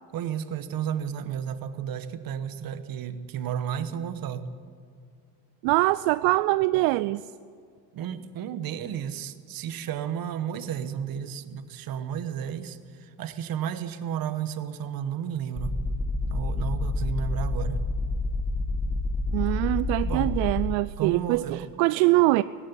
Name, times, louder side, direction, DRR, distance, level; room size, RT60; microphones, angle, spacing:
voice 1, 0.1-4.5 7.9-15.7 16.3-17.8 20.0-20.3 21.0-21.7, right 9 dB, 45° right, 11 dB, 1.4 m, -32 dB
voice 2, 5.6-7.2 19.3-22.4, right 20 dB, 75° right, 15 dB, 0.6 m, -23 dB
sound 1, 15.6-20.9, left 2 dB, 5° left, 0.4 m, -28 dB
17.5 x 15.5 x 9.9 m, 2.1 s
cardioid pair, 125°, 46 cm